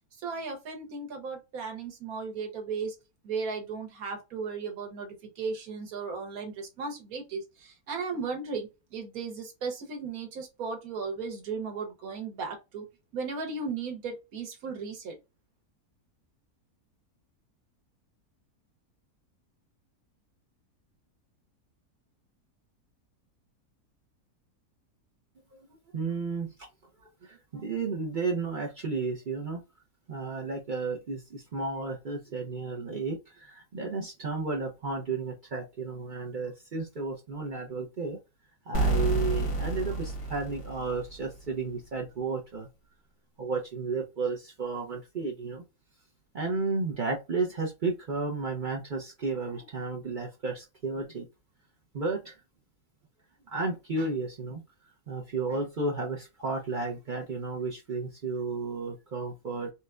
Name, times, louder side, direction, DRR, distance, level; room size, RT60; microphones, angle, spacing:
voice 1, 0.2-2.9 3.2-12.8 13.1-15.1, right 4 dB, 70° right, 1.4 m, -36 dB
voice 2, 25.9-26.7 27.2-29.6 30.1-38.2 38.7-42.7 43.4-45.6 46.3-51.3 51.9-52.4 53.5-54.6 55.1-59.7, right 3 dB, 55° right, 0.6 m, -33 dB
sound 1, 38.7-41.5, right 2 dB, 80° left, 1.8 m, -29 dB
4.2 x 2.2 x 2.4 m
omnidirectional pair, 1.6 m